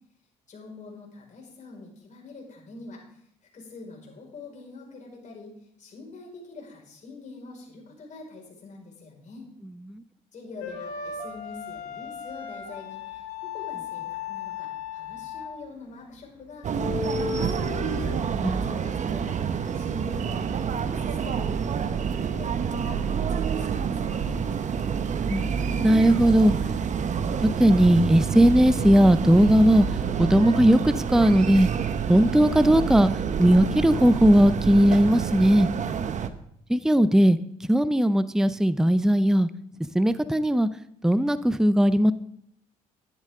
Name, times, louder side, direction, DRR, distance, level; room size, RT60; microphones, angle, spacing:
voice 1, 0.5-3.2 3.5-9.5 10.3-17.6 18.1-24.4, left 3 dB, 50° left, 0 dB, 5.2 m, -44 dB
sound 1, 10.6-15.7 16.1-16.3 16.7-18.3, left 6 dB, 85° left, 1.4 m, -35 dB
sound 2, 16.6-36.3, right 7 dB, 50° right, 1.0 m, -28 dB
voice 2, 18.3-18.6 25.3-26.5 27.1-27.3 27.6-29.8 30.2-31.7 32.1-33.1 33.4-35.7 36.7-39.5 39.8-40.7 41.0-42.1, equal, 5° right, 14 dB, 0.6 m, -19 dB
12.0 x 10.5 x 3.7 m, 0.73 s
supercardioid pair, 65°, 16 cm